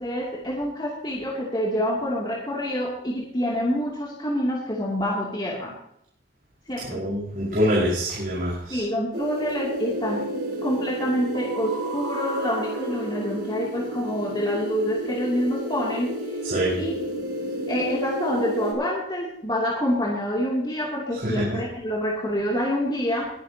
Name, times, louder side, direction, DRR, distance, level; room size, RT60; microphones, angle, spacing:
voice 1, 0.0-5.8 6.7-7.0 8.7-10.3 10.6-16.2 16.8-16.9 17.7-23.3, equal, 25° left, -4 dB, 2.8 m, -27 dB
voice 2, 6.9-8.8 16.4-16.8 21.2-21.6, equal, 55° right, -6 dB, 5.3 m, -25 dB
sound 1, 9.1-18.7, right 1 dB, 75° right, 5.3 m, -31 dB
21.5 x 10.5 x 2.9 m, 0.73 s
head